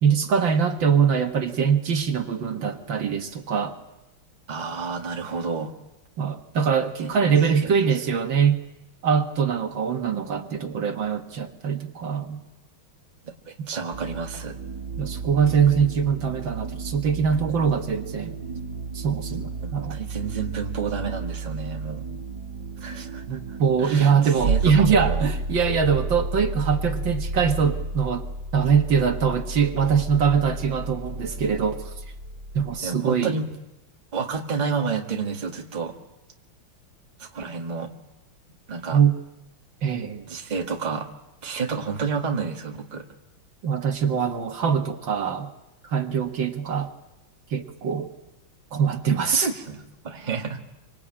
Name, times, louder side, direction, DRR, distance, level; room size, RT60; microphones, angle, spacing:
voice 1, 0.0-3.7 6.2-8.6 9.0-12.4 15.0-18.4 18.9-20.0 23.3-28.3 28.5-31.9 32.5-33.4 38.9-39.1 39.8-40.3 43.6-45.5 45.8-46.9 47.5-48.1 48.7-49.5, right 6 dB, 65° right, 5 dB, 2.2 m, -23 dB
voice 2, 4.5-5.8 7.0-7.3 7.6-7.8 13.5-14.6 19.6-22.1 22.8-25.3 32.8-33.5 34.1-36.0 37.2-37.9 38.7-39.0 40.3-41.1 41.4-43.1 49.4-50.6, right 5 dB, 20° right, 2 dB, 1.7 m, -30 dB
sound 1, 13.9-32.8, right 3 dB, 45° right, 2.6 m, -32 dB
25.5 x 25.0 x 8.7 m, 0.93 s
omnidirectional pair, 2.3 m